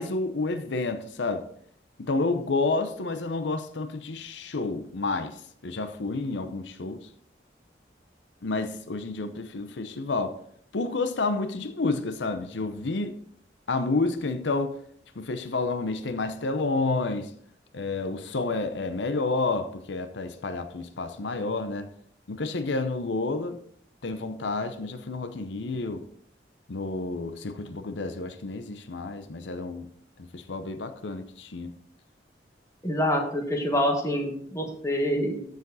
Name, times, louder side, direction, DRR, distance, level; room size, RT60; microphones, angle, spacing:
voice 1, 0.0-1.5 2.0-7.1 8.4-10.4 10.7-13.2 13.7-14.8 15.2-17.3 17.7-21.9 22.3-23.6 24.0-26.1 26.7-29.9 30.2-31.7, left 3 dB, 90° left, 0.7 m, -30 dB
voice 2, 32.8-35.4, equal, 15° left, 1.5 m, -26 dB
13.5 x 5.0 x 4.1 m
head